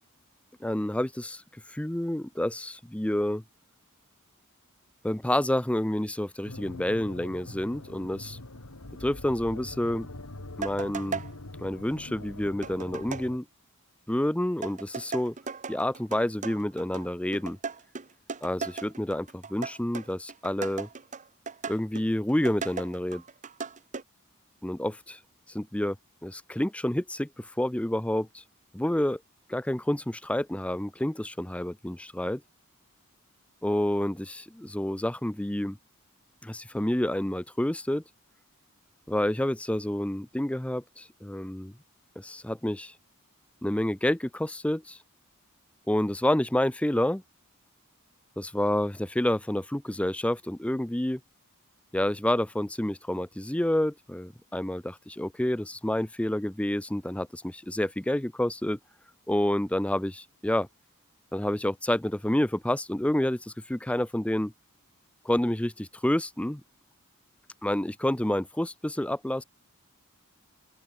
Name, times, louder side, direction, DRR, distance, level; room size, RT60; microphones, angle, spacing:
voice 1, 0.6-1.4 1.7-3.4 5.0-8.4 9.0-10.1 10.6-11.2 11.6-13.4 14.1-15.3 15.7-17.6 18.4-20.9 21.7-23.2 24.6-25.2 25.5-26.0 26.2-28.4 28.7-29.2 29.5-32.4 33.6-35.8 36.4-38.0 39.1-41.7 42.2-42.9 43.6-45.0 45.9-47.2 48.4-51.2 51.9-58.8 59.3-60.7 61.3-64.5 65.2-66.6 67.6-69.4, left 1 dB, 5° left, 0.5 m, -29 dB
sound 1, 6.4-13.4, left 2 dB, 90° left, 2.2 m, -43 dB
sound 2, 10.6-11.3 12.6-13.3 14.6-24.0, right 5 dB, 35° right, 0.9 m, -37 dB
open air
head